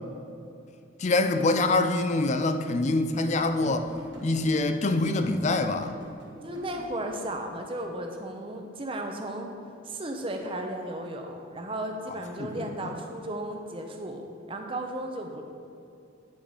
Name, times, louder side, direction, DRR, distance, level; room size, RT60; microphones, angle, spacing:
voice 1, 1.0-3.9 4.2-5.9 12.4-12.5 12.8-12.9, left 2 dB, 35° left, 8 dB, 0.4 m, -25 dB
sound 1, 3.3-7.3 10.7-11.1 12.2-12.3, equal, 60° right, 1.5 m, -45 dB
voice 2, 6.3-9.5 9.8-14.2 14.5-15.4, right 1 dB, 25° right, 3 dB, 0.6 m, -35 dB
10.0 x 3.8 x 4.9 m, 2.6 s
head